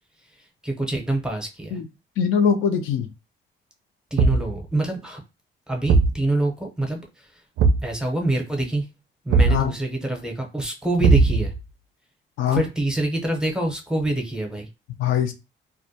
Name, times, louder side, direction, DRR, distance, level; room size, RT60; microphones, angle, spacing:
voice 1, 0.3-1.8 4.1-5.2 5.7-7.4 7.8-8.9 9.2-11.5 12.5-14.7, right 1 dB, 5° right, 1 dB, 0.6 m, -26 dB
voice 2, 2.2-3.1 9.5-9.7 12.4-12.6 15.0-15.3, left 7 dB, 85° left, 7 dB, 0.4 m, -21 dB
Thump thud, 4.2-4.6 5.9-6.2 7.6-7.9 9.3-9.7 11.0-11.6, right 4 dB, 65° right, 0.4 m, -18 dB
2.2 x 2.1 x 2.6 m, 0.27 s
cardioid pair, 90°, 20 cm